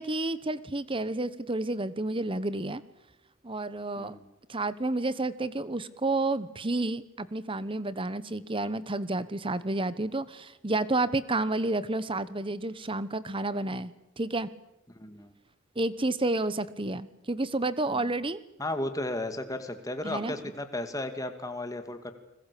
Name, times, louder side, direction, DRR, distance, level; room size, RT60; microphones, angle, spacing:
voice 1, 0.0-2.8 3.4-4.2 4.5-14.5 15.8-18.4 20.0-20.4, right 2 dB, 25° right, 16 dB, 1.1 m, -30 dB
voice 2, 14.9-15.3 17.9-18.0 18.6-22.1, left 1 dB, 15° left, 7 dB, 2.3 m, -34 dB
30.0 x 21.0 x 8.5 m, 0.90 s
head